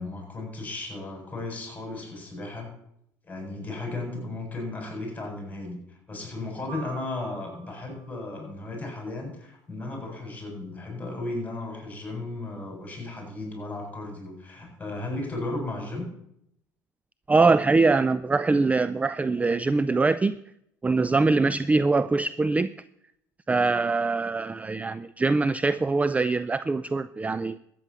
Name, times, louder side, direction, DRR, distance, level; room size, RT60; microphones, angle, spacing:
voice 1, 0.0-2.7 3.2-5.8 6.1-16.1, left 2 dB, 15° left, 1 dB, 7.4 m, -35 dB
sound 1, 6.7-8.8, right 7 dB, 65° right, 6.8 m, -46 dB
voice 2, 17.3-20.4 20.8-22.7 23.5-27.6, right 3 dB, 15° right, 16 dB, 0.4 m, -23 dB
13.5 x 9.3 x 7.0 m, 0.76 s
hypercardioid pair, 75°, 9 cm